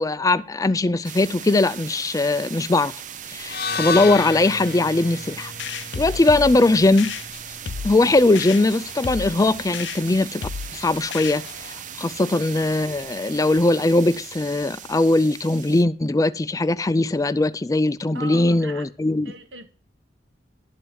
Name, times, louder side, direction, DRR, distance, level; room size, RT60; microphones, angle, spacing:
voice 1, 0.0-2.9 3.3-5.5 6.0-7.1 7.8-10.4 10.7-11.4 12.0-19.3, left 2 dB, 20° left, 0.4 m, -20 dB
sound 1, 1.0-15.8, right 9 dB, 45° right, 0.5 m, -38 dB
sound 2, 3.4-7.6, left 5 dB, 60° left, 0.8 m, -31 dB
sound 3, 5.6-11.8, left 6 dB, 80° left, 0.6 m, -34 dB
voice 2, 18.1-18.9 19.2-19.7, right 3 dB, 80° right, 1.3 m, -39 dB
12.0 x 4.6 x 8.0 m
head